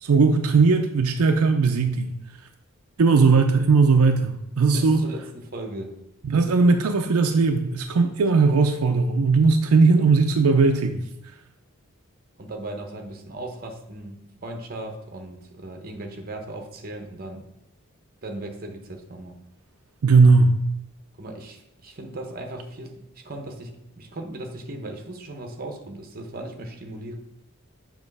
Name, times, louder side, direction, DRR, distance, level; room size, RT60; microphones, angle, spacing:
voice 1, 0.0-2.1 3.0-5.0 6.2-11.0 20.0-20.5, right 4 dB, 80° right, 5 dB, 0.5 m, -18 dB
voice 2, 4.7-6.0 12.4-17.4 18.2-19.4 21.2-27.1, right 1 dB, 40° right, 3 dB, 0.9 m, -37 dB
7.1 x 3.0 x 5.3 m, 0.88 s
head